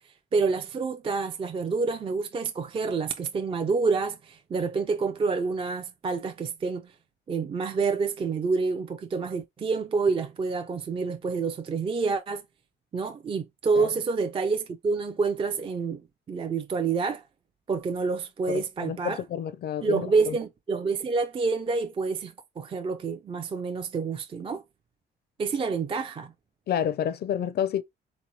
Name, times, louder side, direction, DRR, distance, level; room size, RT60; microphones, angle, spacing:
voice 1, 0.3-6.9 7.3-12.4 12.9-16.0 16.3-17.2 17.7-19.2 19.8-24.6 25.4-26.3, right 4 dB, 25° right, 0.4 m, -28 dB
voice 2, 18.5-20.4 26.7-27.8, left 9 dB, 55° left, 0.4 m, -29 dB
3.7 x 2.9 x 2.7 m
cardioid pair, 90°, 20 cm